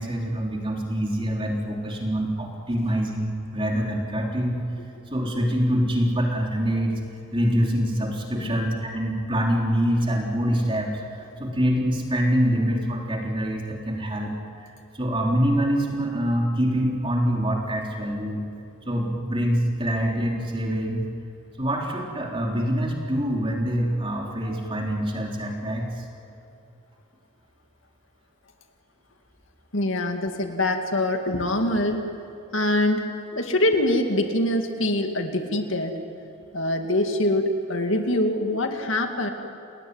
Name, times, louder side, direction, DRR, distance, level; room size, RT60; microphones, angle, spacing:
voice 1, 0.0-4.6 5.1-7.0 7.3-14.7 14.9-18.4 18.9-21.0 21.6-26.1, equal, 25° right, 0 dB, 3.6 m, -25 dB
voice 2, 29.7-32.0 32.5-33.1 33.3-35.9 36.5-39.3, left 1 dB, 65° left, 5 dB, 2.2 m, -24 dB
29.5 x 20.0 x 9.6 m, 2.7 s
head